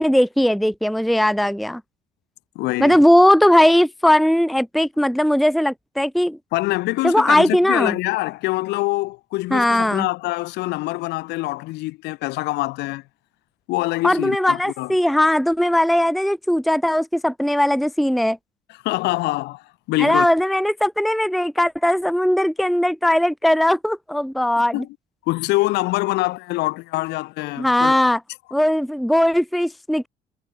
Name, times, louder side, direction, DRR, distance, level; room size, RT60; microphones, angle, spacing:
voice 1, 0.0-1.8 2.8-6.4 7.0-8.0 9.5-10.1 14.0-18.4 20.0-24.8 27.6-28.2 28.5-30.1, left 1 dB, ahead, 0.7 m, -18 dB
voice 2, 2.6-3.0 6.5-13.0 13.7-14.9 18.8-20.3 24.6-24.9 25.3-28.0, left 20 dB, 85° left, 0.6 m, -24 dB
cardioid pair, 110°, 17 cm